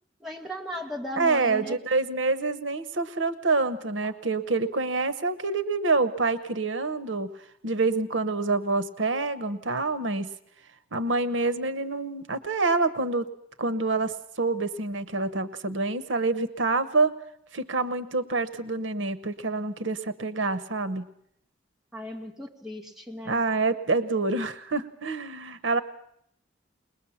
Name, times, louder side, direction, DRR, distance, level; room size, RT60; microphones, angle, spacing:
voice 1, 0.2-1.8 21.9-23.4, equal, ahead, -1 dB, 2.3 m, -36 dB
voice 2, 1.2-7.3 7.6-10.3 10.9-13.3 13.6-17.2 17.5-21.0 23.2-25.8, right 3 dB, 85° right, 13 dB, 1.0 m, -27 dB
21.5 x 20.5 x 7.1 m, 0.69 s
head